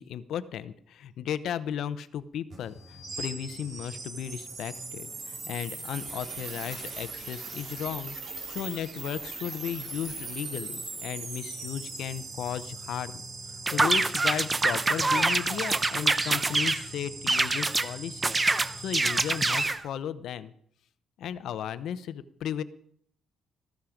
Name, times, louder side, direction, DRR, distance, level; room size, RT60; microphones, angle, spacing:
voice 1, 0.0-8.2 8.5-13.2 13.7-18.3 18.8-20.5 21.2-22.6, left 9 dB, 75° left, 14 dB, 0.7 m, -35 dB
sound 1, 2.5-19.7, right 3 dB, 65° right, 3.6 m, -40 dB
sound 2, 13.7-16.8 17.3-17.9 18.2-19.8, right 3 dB, 25° right, 0.8 m, -25 dB
14.5 x 13.0 x 5.1 m, 0.64 s
cardioid pair, 90°, 0 cm